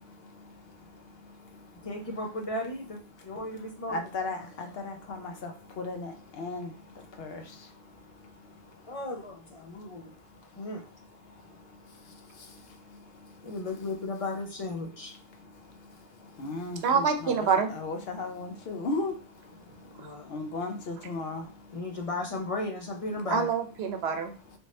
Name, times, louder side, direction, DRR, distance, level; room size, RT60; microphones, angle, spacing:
voice 1, 1.8-4.1 4.5-4.7 7.0-7.1 8.9-10.1 10.6-10.8 13.4-15.1 19.7-20.4 21.7-23.5, left 2 dB, 40° left, 0.6 m, -35 dB
voice 2, 3.9-6.7 7.2-7.4 16.4-17.5 17.8-19.2 20.3-21.5, left 3 dB, 70° left, 0.9 m, -35 dB
voice 3, 16.8-17.7 23.3-24.6, right 6 dB, 80° right, 0.9 m, -26 dB
3.4 x 2.6 x 3.1 m
omnidirectional pair, 1.1 m